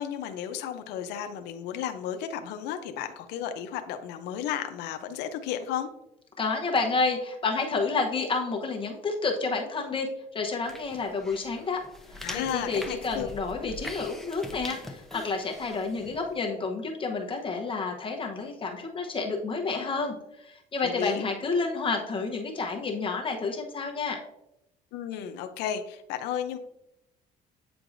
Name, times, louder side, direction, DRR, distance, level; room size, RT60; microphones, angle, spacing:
voice 1, 0.0-5.9 12.2-13.3 20.8-21.2 24.9-26.6, left 9 dB, 90° left, 7 dB, 0.6 m, -33 dB
voice 2, 6.4-10.1 10.3-11.8 12.1-24.2, left 4 dB, 30° left, 1 dB, 0.9 m, -30 dB
sound 1, 10.6-16.4, left 1 dB, ahead, 0.7 m, -43 dB
8.5 x 4.6 x 2.6 m, 0.84 s
cardioid pair, 110°, 17 cm